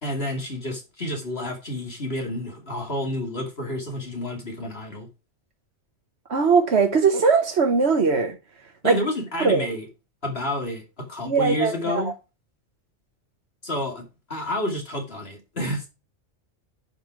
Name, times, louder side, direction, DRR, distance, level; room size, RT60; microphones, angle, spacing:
voice 1, 0.0-5.1 8.8-9.9 10.2-12.1 13.6-15.9, left 1 dB, 55° left, 2.6 m, -29 dB
voice 2, 6.3-8.4 8.8-9.0 9.4-9.7 11.3-12.1, right 5 dB, 60° right, 1.3 m, -20 dB
10.5 x 5.5 x 5.1 m
omnidirectional pair, 1.3 m